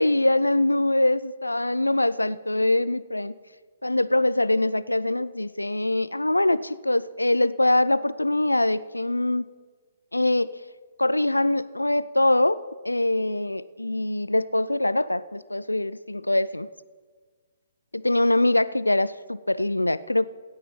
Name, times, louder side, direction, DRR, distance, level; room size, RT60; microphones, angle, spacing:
voice 1, 0.0-3.4 3.8-9.4 10.1-10.5 11.0-16.7 17.9-20.3, left 1 dB, 90° left, 17 dB, 0.4 m, -23 dB
16.5 x 9.2 x 5.4 m, 1.5 s
figure-of-eight pair, 130°, 0 cm